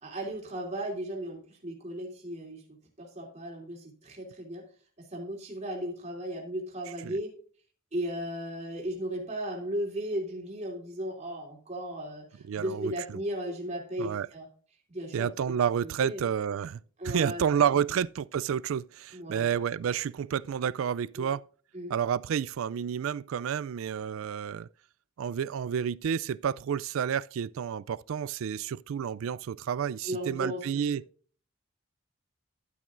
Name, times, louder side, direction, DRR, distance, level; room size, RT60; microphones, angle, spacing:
voice 1, 0.0-2.6 3.0-4.6 5.0-7.3 7.9-14.5 14.9-15.3 15.8-16.2 17.0-17.6 19.1-19.5 21.2-21.3 21.7-21.9 30.0-30.9, right 1 dB, 30° right, 2.9 m, -36 dB
voice 2, 12.5-13.2 14.0-14.3 15.1-16.8 17.0-21.4 21.9-24.7 25.2-31.0, right 8 dB, 75° right, 0.3 m, -30 dB
12.0 x 8.4 x 2.5 m
head